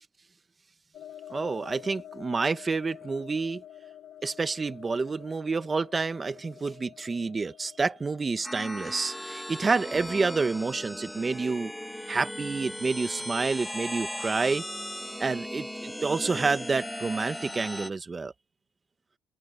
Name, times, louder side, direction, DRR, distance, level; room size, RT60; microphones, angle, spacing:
sound 1, 0.9-10.5, left 10 dB, 70° left, 4.5 m, -49 dB
voice 1, 1.3-3.6 4.2-11.7 12.1-14.6 15.2-18.3, right 4 dB, 25° right, 1.2 m, -29 dB
sound 2, 8.4-17.9, left 1 dB, 5° left, 2.0 m, -37 dB
cardioid pair, 115°, 0 cm